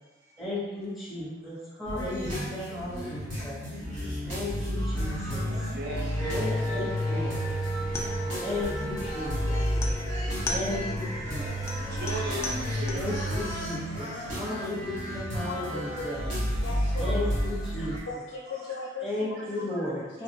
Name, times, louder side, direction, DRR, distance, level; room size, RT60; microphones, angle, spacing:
voice 1, 0.4-3.7 4.3-5.5 6.3-7.6 8.4-9.6 10.5-11.4 12.9-14.1 14.3-16.3 17.0-17.9 19.0-20.2, left 1 dB, ahead, -10 dB, 0.7 m, -35 dB
sound 1, 1.8-18.0, equal, 80° right, 1.0 m, -31 dB
voice 2, 5.7-7.4 12.0-13.0 15.9-16.0 18.5-18.6 19.7-19.8, right 1 dB, 55° right, -3 dB, 0.6 m, -37 dB
Wind instrument woodwind instrument, 6.1-12.0, equal, 30° right, 1.0 m, -39 dB
sound 2, 7.8-13.2, left 1 dB, 15° left, 0.3 m, -38 dB
voice 3, 15.4-17.3 18.0-20.2, left 3 dB, 85° left, -3 dB, 0.4 m, -38 dB
3.2 x 2.0 x 2.6 m, 1.2 s
head